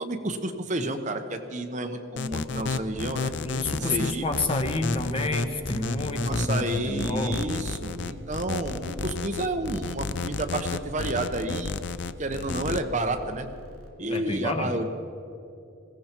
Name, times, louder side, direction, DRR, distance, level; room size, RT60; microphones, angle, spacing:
voice 1, 0.0-3.3 3.8-4.3 6.2-11.8 12.2-13.5 14.0-14.9, right 2 dB, 35° right, 6 dB, 0.9 m, -30 dB
sound 1, 2.2-12.8, left 4 dB, 55° left, 0.5 m, -31 dB
sound 2, 2.4-13.9, left 1 dB, 85° right, 3.6 m, -47 dB
voice 2, 3.4-7.6 14.1-14.9, left 2 dB, 25° left, 5 dB, 1.1 m, -29 dB
20.0 x 16.0 x 4.5 m, 2.7 s
head